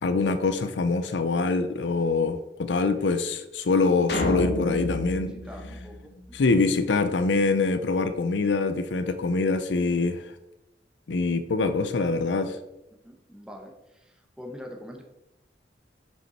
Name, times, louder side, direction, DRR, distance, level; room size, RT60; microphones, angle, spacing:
voice 1, 0.0-5.3 6.3-10.3 11.1-12.6, left 3 dB, 90° left, 10 dB, 0.6 m, -24 dB
sound 1, 4.1-6.5, left 1 dB, 60° left, 1.2 m, -30 dB
voice 2, 5.5-6.1 13.0-13.7 14.4-15.0, left 1 dB, 5° right, 2 dB, 0.9 m, -42 dB
7.7 x 5.5 x 4.2 m, 0.92 s
head